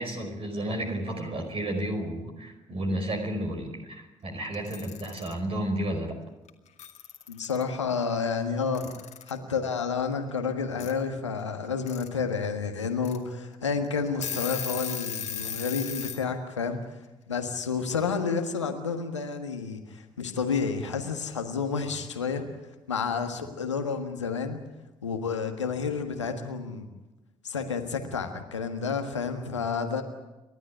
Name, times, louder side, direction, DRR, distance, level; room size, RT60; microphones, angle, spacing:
voice 1, 0.0-6.1, right 1 dB, 40° right, 3 dB, 5.2 m, -32 dB
Alarm / Clock, 4.5-5.3 6.5-6.6 6.8-7.6 8.7-9.4 10.8-10.9 11.6-12.1 12.5-12.6 13.0-13.2 13.7-13.8 14.1-16.2, left 7 dB, 50° left, 2.3 m, -36 dB
voice 2, 7.3-8.9 9.3-16.8 17.3-22.4 22.9-24.6 25.0-26.9 27.4-30.0, left 5 dB, 80° left, 6 dB, 1.5 m, -30 dB
29.5 x 12.5 x 9.9 m, 1.0 s
figure-of-eight pair, 45°, 15 cm